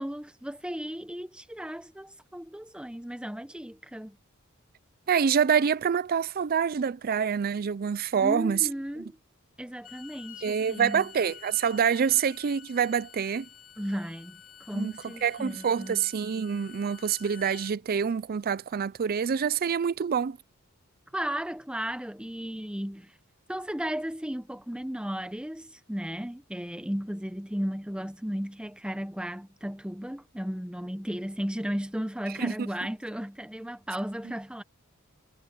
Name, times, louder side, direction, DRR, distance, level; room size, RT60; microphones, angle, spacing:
voice 1, 0.0-4.2 8.2-9.2 9.6-11.1 13.8-14.4 14.7-16.0 21.1-23.1 23.5-34.6, equal, 5° right, 0.9 m, -35 dB
voice 2, 5.1-8.7 9.0-9.1 10.4-13.5 14.7-14.9 15.2-20.4 32.4-32.5, right 7 dB, 45° right, 0.4 m, -26 dB
Bowed string instrument, 9.7-17.7, left 9 dB, 40° left, 2.5 m, -50 dB
head